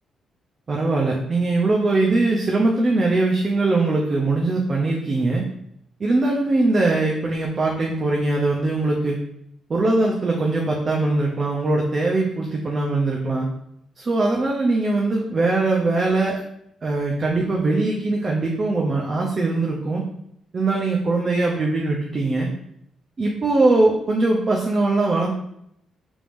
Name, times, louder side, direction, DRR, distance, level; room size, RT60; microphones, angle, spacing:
voice 1, 0.7-5.5 6.0-9.2 9.7-13.5 14.0-16.4 16.8-20.0 20.5-22.5 23.2-25.3, right 2 dB, 35° right, -2 dB, 0.5 m, -21 dB
4.7 x 3.5 x 2.6 m, 0.76 s
cardioid pair, 120°, 0 cm